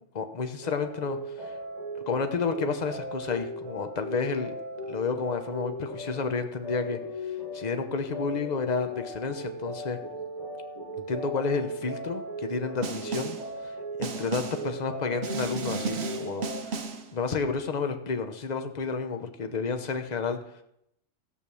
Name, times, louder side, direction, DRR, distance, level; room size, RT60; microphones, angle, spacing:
voice 1, 0.1-1.6 2.1-4.5 4.9-10.0 11.1-16.8 17.1-20.6, left 5 dB, 35° left, 7 dB, 1.0 m, -31 dB
sound 1, 0.6-16.6, equal, 30° right, 5.9 m, -38 dB
Snare drum, 12.8-13.5 14.0-14.7 15.2-17.1, right 4 dB, 55° right, 1.2 m, -34 dB
14.0 x 6.7 x 7.0 m, 0.79 s
omnidirectional pair, 1.3 m